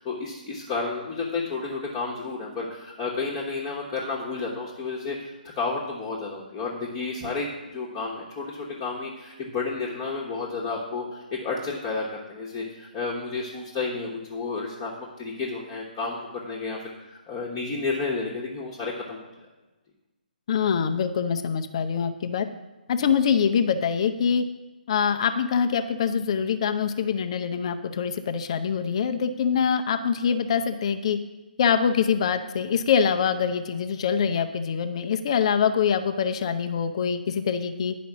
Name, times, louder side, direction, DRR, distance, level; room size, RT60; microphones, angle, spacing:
voice 1, 0.0-19.2, left 4 dB, 20° left, -5 dB, 1.2 m, -31 dB
voice 2, 20.5-22.5 22.9-24.4 24.9-31.2 31.6-37.9, left 7 dB, 35° left, 8 dB, 0.6 m, -24 dB
10.5 x 5.1 x 5.9 m, 1.1 s
figure-of-eight pair, 140°, 5 cm